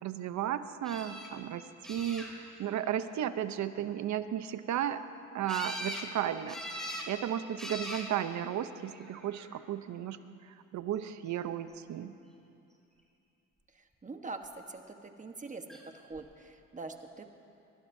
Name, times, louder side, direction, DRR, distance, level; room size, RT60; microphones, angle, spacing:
voice 1, 0.0-5.0 5.3-6.6 7.1-10.2 10.4-12.1, right 10 dB, 70° right, 11 dB, 0.8 m, -34 dB
sound 1, 0.8-1.3 1.8-2.6 5.5-6.1 6.5-7.1 7.6-8.1 9.0-9.5 15.7-15.8 16.1-16.2, equal, ahead, 3.1 m, -40 dB
voice 2, 14.0-14.4 14.7-15.8 16.1-17.2, right 3 dB, 25° right, 5 dB, 1.2 m, -43 dB
22.5 x 20.0 x 2.7 m, 2.7 s
cardioid pair, 90°, 30 cm